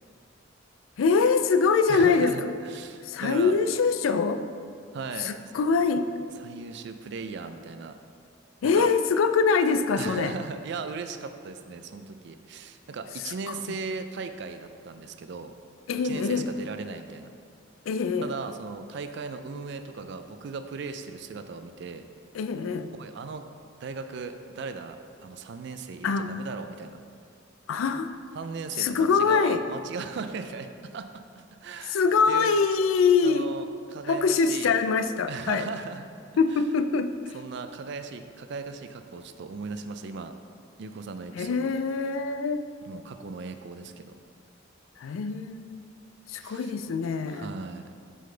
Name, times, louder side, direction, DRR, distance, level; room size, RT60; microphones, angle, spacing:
voice 1, 1.0-2.3 3.0-4.4 5.2-6.1 8.6-10.3 13.5-13.6 15.9-16.5 17.9-18.3 22.3-22.9 26.0-26.3 27.7-28.2 28.8-29.6 31.9-33.5 34.1-35.7 36.4-37.4 41.4-42.7 45.0-45.8 46.3-47.5, left 5 dB, 90° left, 10 dB, 0.4 m, -24 dB
voice 2, 1.9-3.6 4.9-5.3 6.4-8.0 8.6-8.9 10.0-15.5 16.0-17.3 18.2-22.1 23.0-23.4 23.8-27.0 28.3-32.0 32.3-32.5 33.2-34.8 35.3-36.0 36.5-36.7 37.3-40.3 40.8-41.8 42.9-44.1 46.4-46.7 47.3-47.9, right 4 dB, 60° right, 9 dB, 0.4 m, -37 dB
7.6 x 5.1 x 3.3 m, 2.2 s
head